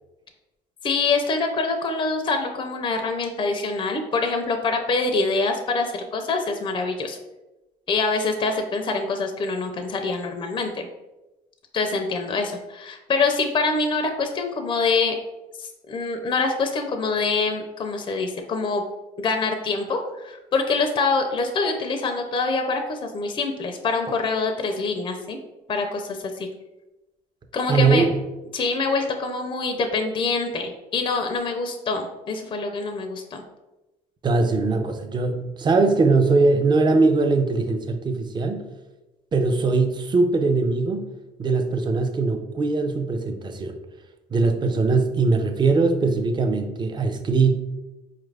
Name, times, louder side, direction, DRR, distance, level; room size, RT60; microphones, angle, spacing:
voice 1, 0.8-7.2 7.9-10.9 11.7-15.2 15.6-18.9 19.2-25.4 25.7-26.5 27.5-28.1 28.5-33.4, left 3 dB, 30° left, 4 dB, 0.4 m, -25 dB
voice 2, 27.7-28.2 34.2-38.6 39.3-41.1 41.4-43.8 44.3-47.6, right 3 dB, 25° right, 6 dB, 0.5 m, -21 dB
4.5 x 2.4 x 3.3 m, 1.0 s
cardioid pair, 110°, 17 cm